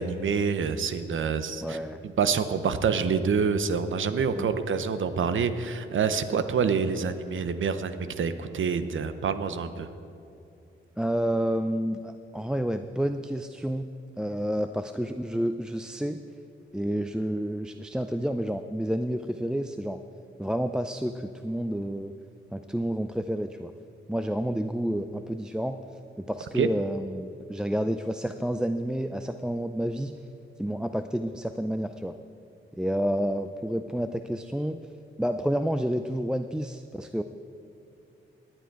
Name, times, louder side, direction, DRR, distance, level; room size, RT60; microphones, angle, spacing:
voice 1, 0.0-1.8 2.0-9.9 26.5-26.7, right 6 dB, 65° right, 11 dB, 0.8 m, -27 dB
voice 2, 1.6-2.0 4.3-4.5 11.0-13.9 14.2-16.2 16.7-20.0 20.4-22.2 22.5-23.7 24.1-25.8 26.2-30.2 30.6-32.1 32.7-34.8 35.2-37.2, equal, 5° right, 8 dB, 0.4 m, -29 dB
18.0 x 9.1 x 4.7 m, 2.7 s
cardioid pair, 70°, 21 cm